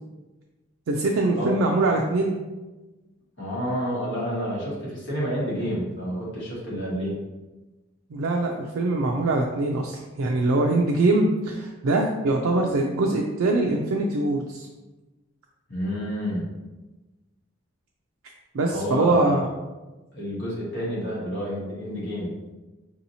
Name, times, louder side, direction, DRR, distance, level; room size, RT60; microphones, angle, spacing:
voice 1, 0.9-2.4 8.1-14.7 18.5-19.4, right 2 dB, 80° right, 0 dB, 0.4 m, -23 dB
voice 2, 3.4-7.2 15.7-16.4 18.7-19.4 20.1-22.3, equal, 60° left, -6 dB, 1.4 m, -29 dB
4.6 x 2.8 x 2.7 m, 1.1 s
head